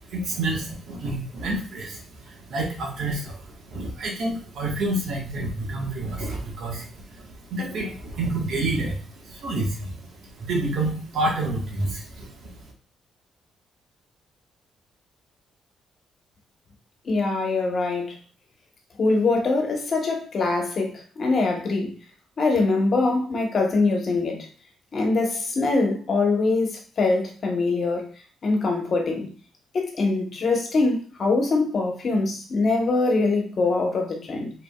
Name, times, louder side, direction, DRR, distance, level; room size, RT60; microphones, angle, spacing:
voice 1, 0.1-2.0 2.3-3.4 3.7-6.9 7.5-9.0 9.2-9.9 10.4-12.3, right 2 dB, 70° right, 1.6 m, -28 dB
voice 2, 17.0-18.2 19.0-21.9 22.4-24.5 24.9-28.1 28.4-29.3 29.7-34.5, left 3 dB, 50° left, 1.3 m, -23 dB
5.0 x 3.7 x 2.4 m
cardioid pair, 90°, 0 cm